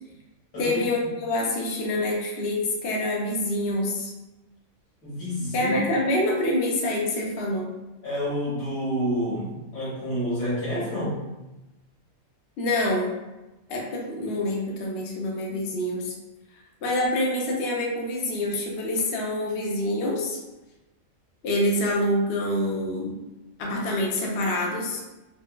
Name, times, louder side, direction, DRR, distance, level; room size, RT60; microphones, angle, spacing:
voice 1, 0.6-4.1 5.5-7.7 12.6-13.1 13.7-16.1 16.8-20.4 21.4-23.2 23.6-25.0, left 1 dB, 55° left, -2 dB, 0.8 m, -26 dB
voice 2, 5.0-5.7 8.0-11.2, equal, 85° left, -7 dB, 1.7 m, -28 dB
4.3 x 2.1 x 2.2 m, 1.0 s
omnidirectional pair, 1.4 m